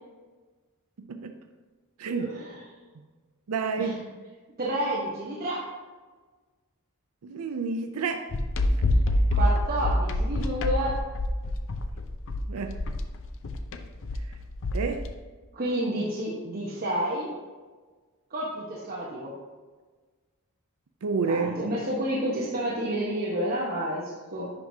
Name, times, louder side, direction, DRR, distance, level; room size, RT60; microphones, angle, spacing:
voice 1, 1.0-1.3 2.0-2.4 3.5-4.1 7.2-8.3 8.7-8.8 12.5-12.8 14.7-15.1 21.0-21.6, right 4 dB, 80° right, 6 dB, 0.5 m, -30 dB
voice 2, 2.1-2.6 3.8-3.9 4.6-5.6 9.3-11.0 15.5-17.3 18.3-19.3 21.2-24.5, right 1 dB, 45° right, -6 dB, 1.0 m, -30 dB
sound 1, 8.3-15.1, left 1 dB, 60° left, 0.6 m, -26 dB
10.5 x 4.7 x 2.7 m, 1.4 s
head